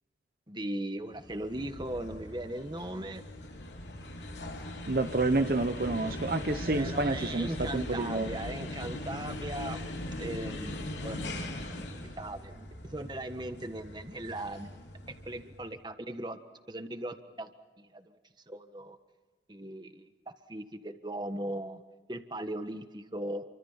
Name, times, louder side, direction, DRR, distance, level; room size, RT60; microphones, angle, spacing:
voice 1, 0.5-3.2 5.6-5.7 6.7-9.9 10.2-12.7 12.9-14.7 15.2-16.4 16.7-17.5 17.8-18.1 18.5-19.0 19.5-20.1 20.5-21.8 22.1-23.4, right 1 dB, 25° right, 8 dB, 1.5 m, -38 dB
sound 1, 1.1-15.6, left 1 dB, 85° left, 4.1 m, -40 dB
voice 2, 4.9-8.3, right 2 dB, 55° right, 9 dB, 0.8 m, -29 dB
29.5 x 24.5 x 5.8 m, 1.3 s
head